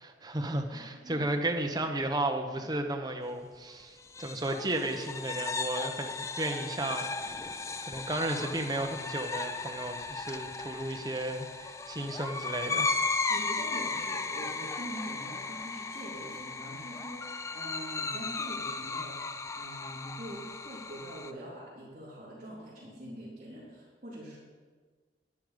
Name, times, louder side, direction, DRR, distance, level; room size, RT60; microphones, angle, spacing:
voice 1, 0.0-7.6 7.8-13.0, right 1 dB, 20° right, 4 dB, 0.9 m, -34 dB
sound 1, 4.0-21.3, left 4 dB, 15° left, 0.4 m, -36 dB
voice 2, 13.3-24.4, right 1 dB, 40° right, -10 dB, 3.1 m, -44 dB
10.0 x 9.9 x 5.1 m, 1.5 s
head